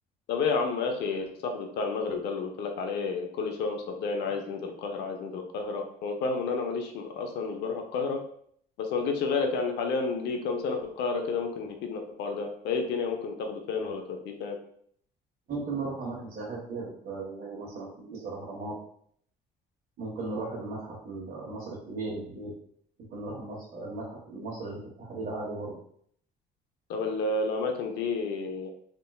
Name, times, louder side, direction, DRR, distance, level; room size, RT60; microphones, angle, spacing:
voice 1, 0.3-8.2 8.8-14.6 26.9-28.7, left 4 dB, 80° left, 4 dB, 0.6 m, -31 dB
voice 2, 15.5-18.7 20.0-22.5 23.1-25.7, right 3 dB, 55° right, -7 dB, 1.1 m, -36 dB
3.6 x 2.4 x 2.3 m, 0.63 s
cardioid pair, 110°, 17 cm